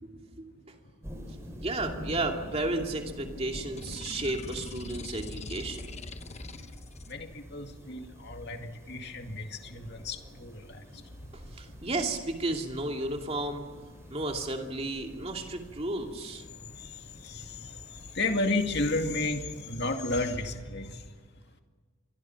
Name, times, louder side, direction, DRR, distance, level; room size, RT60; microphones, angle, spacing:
voice 1, 0.0-0.7 1.6-6.0 11.5-13.6 14.1-16.4 17.6-17.7, right 2 dB, 30° right, 3 dB, 2.6 m, -33 dB
sound 1, 1.0-19.7, equal, 15° right, 3.9 m, -47 dB
sound 2, 3.8-7.1, left 2 dB, 30° left, 1.0 m, -43 dB
voice 2, 7.1-10.5 17.2-17.4 18.2-19.4 19.7-20.9, left 2 dB, 50° left, 5 dB, 2.2 m, -31 dB
28.5 x 23.5 x 5.9 m, 1.5 s
head